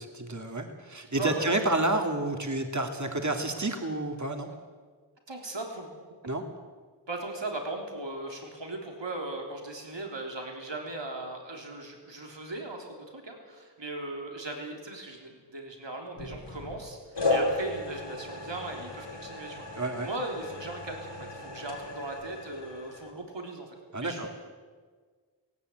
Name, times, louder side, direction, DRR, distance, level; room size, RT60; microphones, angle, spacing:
voice 1, 0.0-4.5 6.3-6.4 19.7-20.1 23.9-24.3, right 2 dB, 40° right, 4 dB, 2.5 m, -30 dB
voice 2, 1.2-1.5 5.3-5.9 7.1-17.0 17.3-19.6 20.0-24.3, right 2 dB, 85° right, 2 dB, 3.7 m, -38 dB
sound 1, 16.2-16.8 17.2-23.1, left 2 dB, 70° left, 4.7 m, -34 dB
18.0 x 17.5 x 9.2 m, 1.5 s
wide cardioid pair, 50°, 43 cm